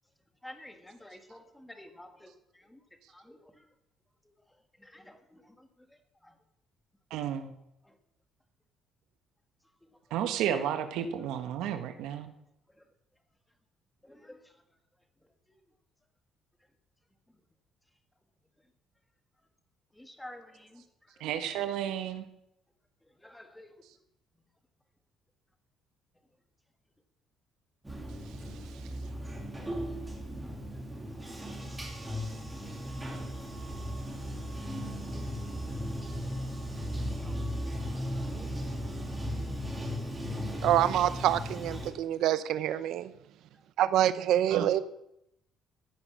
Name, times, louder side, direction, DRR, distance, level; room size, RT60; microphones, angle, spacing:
voice 1, 0.4-2.8 3.1-3.7 4.2-4.3 4.8-6.4 7.8-8.0 9.9-10.2 12.7-12.9 14.0-14.6 15.5-15.6 17.3-17.4 19.9-21.4 23.1-23.7 28.6-28.7 29.0-29.5 30.7-30.8 37.2-37.5 38.1-38.5 41.7-41.8 43.5-43.6, left 1 dB, 5° left, 7 dB, 1.7 m, -52 dB
voice 2, 7.1-7.5 10.1-12.3 21.2-22.3 28.3-28.9 44.5-44.8, right 9 dB, 90° right, 8 dB, 1.5 m, -33 dB
Bathtub (filling or washing), 27.8-41.9, equal, 10° right, 2.9 m, -36 dB
voice 3, 40.6-43.1 43.8-44.8, right 12 dB, 70° right, 15 dB, 0.9 m, -26 dB
15.0 x 10.0 x 6.4 m, 0.79 s
cardioid pair, 140°, 0 cm